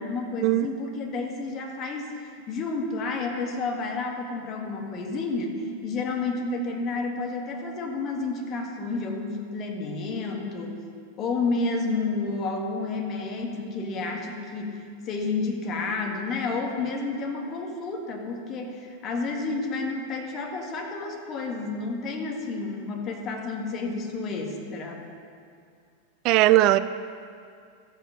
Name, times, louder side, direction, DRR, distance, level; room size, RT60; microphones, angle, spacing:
voice 1, 0.0-10.8 11.2-25.1, left 3 dB, 30° left, 1.8 m, -30 dB
voice 2, 26.2-26.8, right 16 dB, 40° right, 0.4 m, -18 dB
13.5 x 8.1 x 5.6 m
figure-of-eight pair, 90°, 0 cm